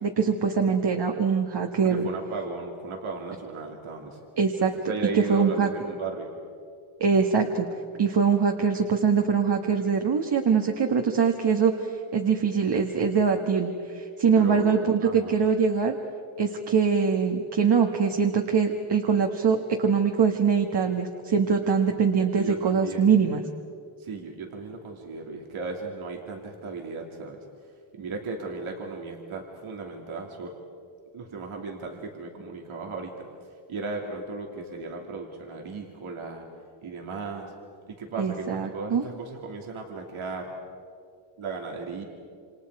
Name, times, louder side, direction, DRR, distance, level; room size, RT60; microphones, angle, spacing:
voice 1, 0.0-2.1 4.4-4.7 5.1-5.7 7.0-7.7 8.0-15.9 16.4-23.4 38.2-39.0, right 6 dB, 55° right, 3 dB, 1.6 m, -23 dB
voice 2, 1.8-4.2 4.6-6.3 14.3-15.4 22.2-23.2 24.0-27.4 27.9-30.6 31.1-33.3 33.7-36.4 36.8-37.5 37.9-40.5 41.4-42.0, right 3 dB, 85° right, 1 dB, 2.9 m, -36 dB
28.0 x 27.0 x 4.8 m, 2.3 s
wide cardioid pair, 100°, 48 cm